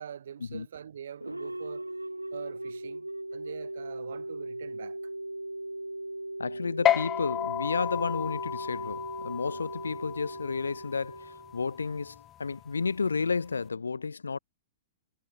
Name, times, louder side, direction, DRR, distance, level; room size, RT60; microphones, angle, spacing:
voice 1, 0.0-1.9 2.3-5.0, right 8 dB, 65° right, 3.6 m, -44 dB
sound 1, 1.2-11.9, right 1 dB, 85° right, 1.3 m, -39 dB
voice 2, 6.4-14.4, left 4 dB, 75° left, 3.1 m, -32 dB
sound 2, 6.9-13.6, left 11 dB, 25° left, 0.4 m, -33 dB
figure-of-eight pair, 105°, 0 cm